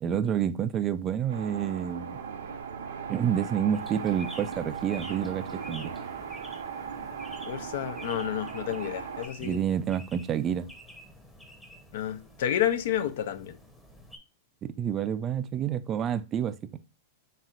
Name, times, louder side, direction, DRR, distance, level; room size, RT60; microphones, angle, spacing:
voice 1, 0.0-2.2 3.1-5.9 9.4-10.7 14.6-16.8, right 9 dB, 30° right, 0.3 m, -29 dB
sound 1, 1.3-9.3, right 6 dB, 85° right, 0.6 m, -38 dB
sound 2, 3.7-14.2, equal, 5° left, 0.8 m, -49 dB
voice 2, 7.5-9.6 11.9-13.6, left 11 dB, 70° left, 0.4 m, -30 dB
4.2 x 3.5 x 2.5 m
hypercardioid pair, 125°, 0 cm